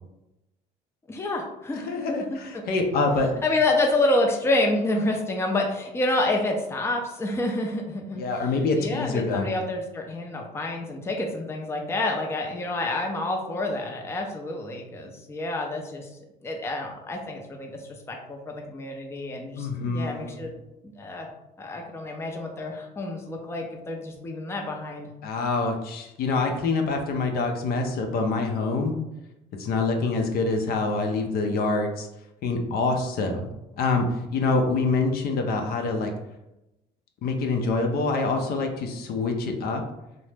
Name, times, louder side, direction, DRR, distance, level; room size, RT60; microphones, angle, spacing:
voice 1, 1.1-2.3 2.5-2.6 3.4-16.1 16.4-20.5 21.0-21.3 21.6-25.1, left 2 dB, 15° left, 1 dB, 0.5 m, -28 dB
voice 2, 1.9-3.3 8.1-9.5 19.6-20.4 25.2-29.0 29.6-32.1 32.4-33.5 33.8-34.0 34.3-36.1 37.2-39.8, left 3 dB, 65° left, 3 dB, 0.5 m, -25 dB
2.7 x 2.0 x 3.3 m, 0.90 s
cardioid pair, 110°, 17 cm